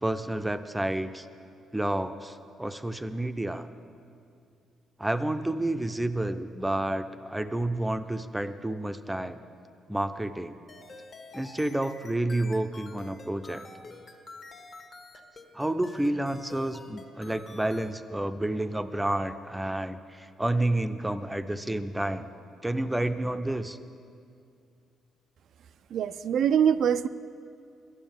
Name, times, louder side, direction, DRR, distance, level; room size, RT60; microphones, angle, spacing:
voice 1, 0.0-1.3 1.7-3.7 5.0-9.4 9.9-10.5 11.3-13.6 15.5-22.3 22.6-23.8, right 1 dB, 10° right, 9 dB, 0.5 m, -30 dB
sound 1, 10.7-17.9, left 3 dB, 45° left, 1.3 m, -48 dB
voice 2, 25.9-27.1, right 8 dB, 70° right, 14 dB, 0.3 m, -24 dB
11.5 x 9.2 x 7.2 m, 2.4 s
cardioid pair, 90°, 0 cm